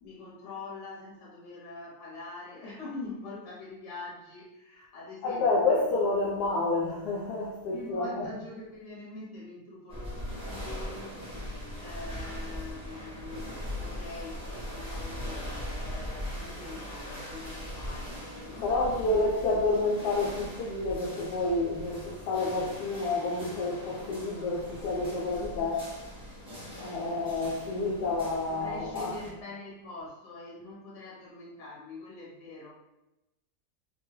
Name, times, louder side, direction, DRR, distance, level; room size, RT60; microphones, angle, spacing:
voice 1, 0.0-5.9 7.7-11.1 11.5-19.2 28.0-28.1 28.5-32.7, left 3 dB, 50° left, -5 dB, 1.2 m, -44 dB
voice 2, 5.2-8.3 18.6-25.9 26.8-29.1, left 3 dB, 75° left, -4 dB, 1.1 m, -29 dB
sound 1, 9.9-29.3, equal, 5° right, 0.4 m, -40 dB
2.8 x 2.2 x 3.1 m, 0.95 s
omnidirectional pair, 1.7 m